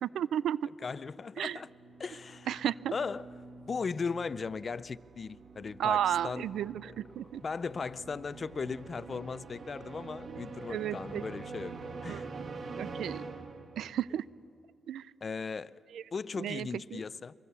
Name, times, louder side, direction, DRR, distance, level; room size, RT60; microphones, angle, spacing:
voice 1, 0.0-0.7 1.4-1.6 2.5-2.9 5.8-7.4 10.3-10.4 10.7-11.2 12.1-12.5 12.7-13.2 13.8-14.2 14.9-15.1 15.9-16.0 16.4-17.0, right 10 dB, 85° right, 0.5 m, -33 dB
voice 2, 0.8-1.7 2.0-2.6 2.9-3.3 3.7-6.5 7.4-11.7 12.0-12.3 15.2-15.8 16.1-17.3, left 5 dB, 40° left, 0.5 m, -37 dB
sound 1, 1.5-14.1, right 3 dB, 50° right, 1.9 m, -46 dB
24.5 x 22.0 x 7.0 m
cardioid pair, 95°, 0 cm